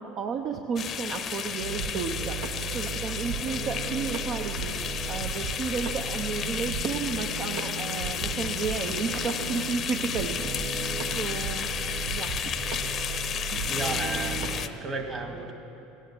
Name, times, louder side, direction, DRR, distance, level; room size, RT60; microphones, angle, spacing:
voice 1, 0.0-4.8 5.1-10.5 11.1-11.7 12.1-12.3, right 5 dB, 50° right, 4 dB, 0.8 m, -32 dB
sound 1, 0.8-14.7, left 8 dB, 40° left, 0.7 m, -33 dB
sound 2, 1.6-14.6, right 5 dB, 70° right, 1.3 m, -35 dB
voice 2, 13.7-15.5, right 3 dB, 30° right, 3 dB, 2.0 m, -34 dB
17.0 x 9.4 x 7.7 m, 3.0 s
supercardioid pair, 100°, 0 cm